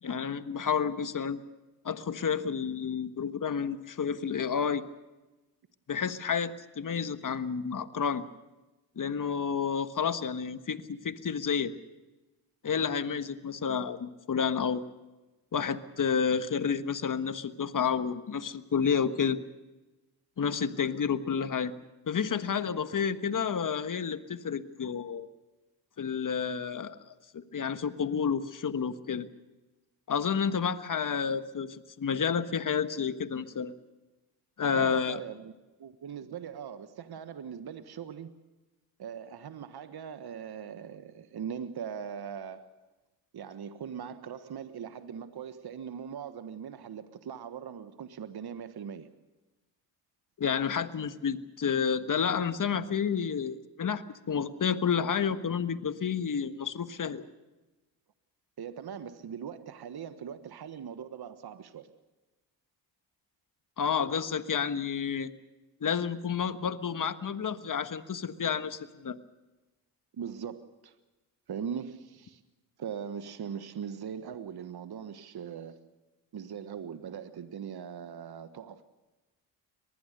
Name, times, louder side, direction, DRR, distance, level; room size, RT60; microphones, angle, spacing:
voice 1, 0.0-1.4 1.8-4.8 5.9-8.2 8.9-11.7 12.6-14.9 15.5-19.4 20.4-21.7 22.1-25.3 26.0-26.9 27.3-29.3 30.1-33.7 34.6-35.2 50.4-57.2 63.8-65.3 65.8-69.2, left 6 dB, 40° left, 11 dB, 1.5 m, -30 dB
voice 2, 34.7-35.5 35.8-38.3 39.0-42.7 43.3-49.1 58.6-61.9 70.1-70.9 71.5-72.4 72.8-75.8 76.3-78.9, right 7 dB, 50° right, 10 dB, 1.5 m, -40 dB
24.0 x 19.5 x 6.7 m, 1.1 s
supercardioid pair, 50°, 49 cm